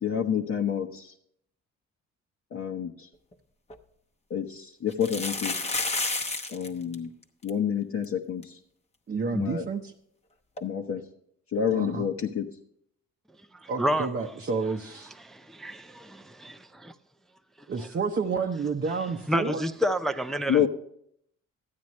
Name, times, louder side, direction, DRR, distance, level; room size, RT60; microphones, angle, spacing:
voice 1, 0.0-1.1 2.5-3.1 4.3-5.5 6.5-7.1 7.4-8.6 9.3-9.7 10.6-11.0 11.5-12.5 20.5-20.7, left 8 dB, 50° left, 0.9 m, -28 dB
sound 1, 3.3-3.4 3.7-3.8 4.9-6.7 6.9-7.0 7.2-7.5 8.0-8.1 8.4-8.5 10.6-10.7, left 3 dB, 20° left, 0.9 m, -30 dB
voice 2, 9.1-9.9 11.7-12.1 13.7-15.1 17.7-19.6, right 5 dB, 35° right, 0.8 m, -30 dB
voice 3, 13.6-14.1 15.6-16.9 19.3-20.7, equal, ahead, 0.5 m, -29 dB
13.0 x 9.2 x 3.1 m
cardioid pair, 90°, 30 cm